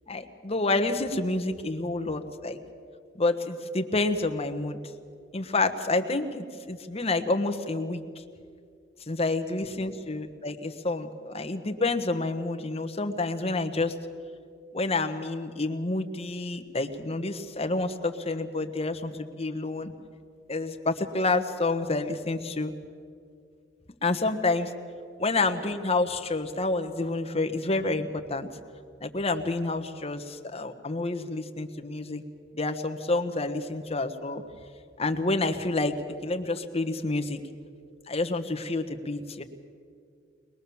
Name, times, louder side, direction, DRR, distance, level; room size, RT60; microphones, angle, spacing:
voice 1, 0.1-2.6 3.1-4.8 5.3-8.0 9.1-13.9 14.7-19.9 20.5-22.7 24.0-24.7 25.2-28.5 29.0-32.2 32.5-34.4 35.0-35.9 36.2-37.4 38.1-39.4, left 2 dB, 35° left, 6 dB, 1.2 m, -28 dB
22.5 x 21.0 x 7.1 m, 2.2 s
head